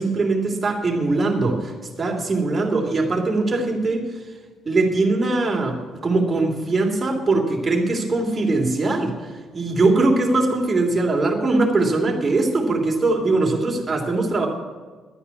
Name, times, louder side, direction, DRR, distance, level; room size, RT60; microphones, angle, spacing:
voice 1, 0.0-1.7 2.0-4.1 4.6-9.1 9.5-14.5, right 2 dB, 30° right, 0 dB, 3.1 m, -21 dB
11.0 x 9.7 x 9.7 m, 1.4 s
hypercardioid pair, 45°, 0 cm